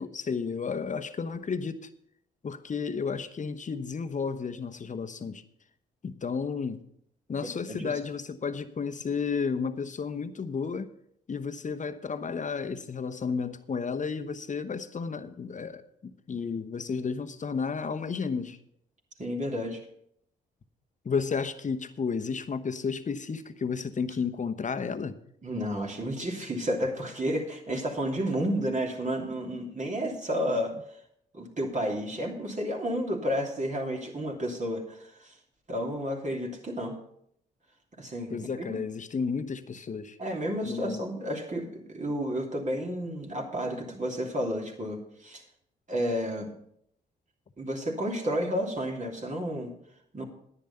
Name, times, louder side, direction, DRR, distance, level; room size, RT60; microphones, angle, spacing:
voice 1, 0.0-1.9 2.4-5.4 6.0-6.8 7.3-10.9 11.3-18.6 21.0-25.2 38.3-40.2 40.6-41.0, left 5 dB, 40° left, 1.0 m, -32 dB
voice 2, 7.4-7.9 19.2-19.8 25.4-30.7 31.3-35.3 35.7-37.0 38.0-38.8 40.2-45.4 45.9-46.5 47.6-49.7 50.1-50.2, equal, 35° right, 3.0 m, -31 dB
10.5 x 9.2 x 5.6 m
supercardioid pair, 50°, 21 cm